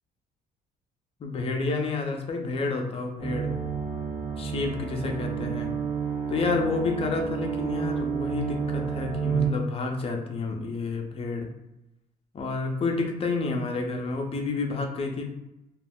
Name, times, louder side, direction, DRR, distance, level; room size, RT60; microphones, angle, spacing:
voice 1, 1.2-3.5 4.4-5.7 6.3-11.5 12.3-15.3, left 3 dB, 35° left, 2 dB, 0.6 m, -29 dB
sound 1, 3.2-9.5, right 6 dB, 40° right, 1.2 m, -30 dB
2.4 x 2.0 x 3.5 m, 0.92 s
cardioid pair, 110°, 17 cm